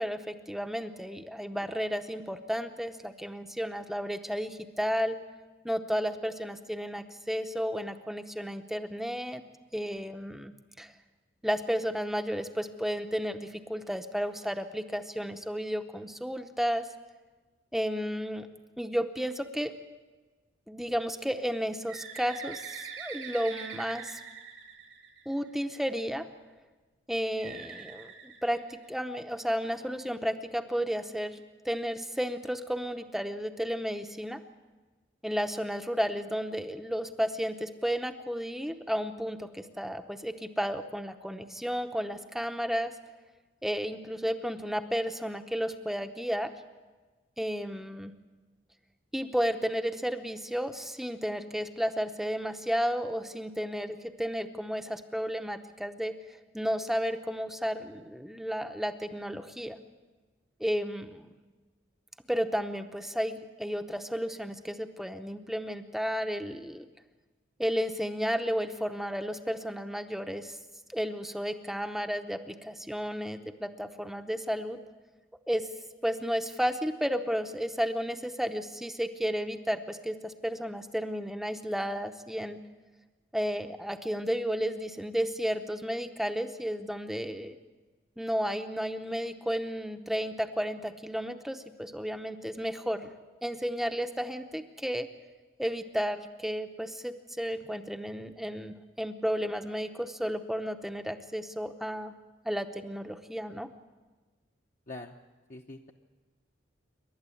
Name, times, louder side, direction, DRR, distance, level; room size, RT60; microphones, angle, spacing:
voice 1, 0.0-5.2 5.6-9.4 9.7-10.5 10.8-10.9 11.4-16.9 17.7-18.5 18.8-19.7 20.7-24.2 25.3-26.3 27.1-34.4 35.2-42.9 43.6-46.5 47.4-48.1 49.1-59.8 60.6-61.3 62.3-66.9 67.6-70.6 70.9-74.8 75.5-75.7 76.0-82.6 83.3-87.6 88.2-95.1 95.6-102.1 102.4-103.7, equal, ahead, 7 dB, 0.7 m, -33 dB
Bird, 21.9-25.6 27.4-29.2, right 6 dB, 85° right, 3.5 m, -43 dB
voice 2, 105.5-105.9, left 2 dB, 40° left, 1 dB, 0.9 m, -43 dB
28.0 x 12.0 x 8.5 m, 1.3 s
head